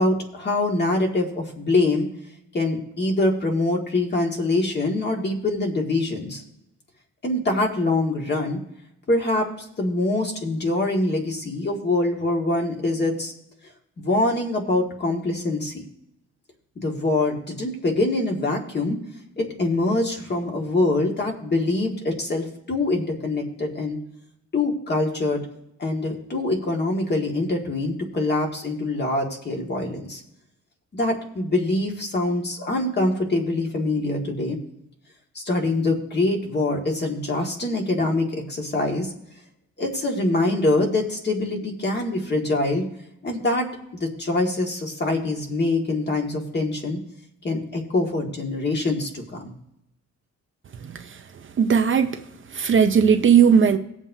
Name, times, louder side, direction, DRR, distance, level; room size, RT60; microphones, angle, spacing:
voice 1, 0.0-2.1 2.5-6.4 7.2-8.6 9.1-13.3 14.0-15.8 16.8-19.0 19.4-24.0 24.5-25.4 25.8-30.2 30.9-34.6 35.4-39.1 39.8-42.8 43.2-43.7 43.9-47.0 47.4-49.5, left 2 dB, 35° left, 1.9 m, -24 dB
voice 2, 50.8-51.2 51.6-52.2 52.5-53.8, right 7 dB, 40° right, 0.6 m, -17 dB
19.5 x 7.3 x 2.7 m
wide cardioid pair, 145°, 30 cm